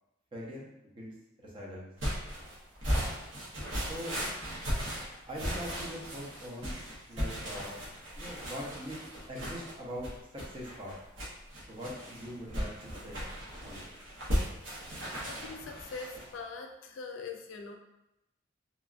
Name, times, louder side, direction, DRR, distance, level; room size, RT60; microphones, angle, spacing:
voice 1, 0.3-0.7 0.9-1.9 3.9-4.2 5.3-6.8 7.1-7.8 8.1-9.0 9.3-10.1 10.3-10.9 11.7-13.2 13.6-13.9, equal, 25° right, -3 dB, 0.6 m, -42 dB
sound 1, 2.0-16.3, equal, 80° right, 0.9 m, -36 dB
voice 2, 15.3-17.7, left 4 dB, 80° left, 4 dB, 0.3 m, -42 dB
2.8 x 2.4 x 2.4 m, 0.89 s
head